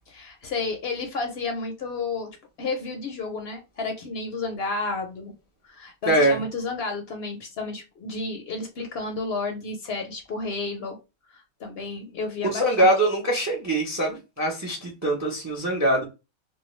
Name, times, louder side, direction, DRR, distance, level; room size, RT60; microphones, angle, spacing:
voice 1, 0.1-2.3 2.6-5.3 5.6-11.0 11.3-12.9, left 3 dB, 60° left, 0.7 m, -31 dB
voice 2, 6.1-6.4 12.5-16.0, right 1 dB, 20° right, 0.4 m, -23 dB
2.3 x 2.2 x 3.0 m
omnidirectional pair, 1.3 m